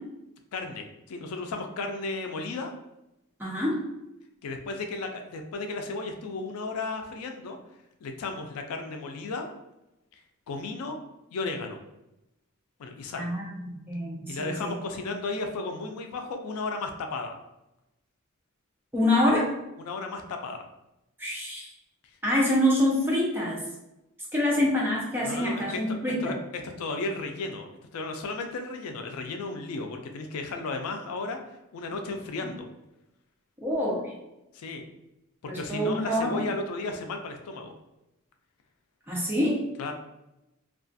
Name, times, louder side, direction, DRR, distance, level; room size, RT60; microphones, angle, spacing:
voice 1, 0.5-2.7 4.4-7.6 8.0-9.5 10.5-11.0 11.3-11.8 12.8-13.3 14.3-17.4 19.8-20.7 25.2-26.3 26.6-27.7 27.9-31.4 31.7-32.7 34.5-34.8 35.4-37.7 39.8-39.9, left 3 dB, 85° left, 4 dB, 0.4 m, -34 dB
voice 2, 3.4-3.8 13.1-14.7 18.9-19.5 21.2-21.7 22.2-23.6 24.3-26.3 33.6-34.0 35.5-36.4 39.1-39.6, left 1 dB, 10° right, -4 dB, 0.5 m, -26 dB
2.3 x 2.3 x 2.6 m, 0.92 s
head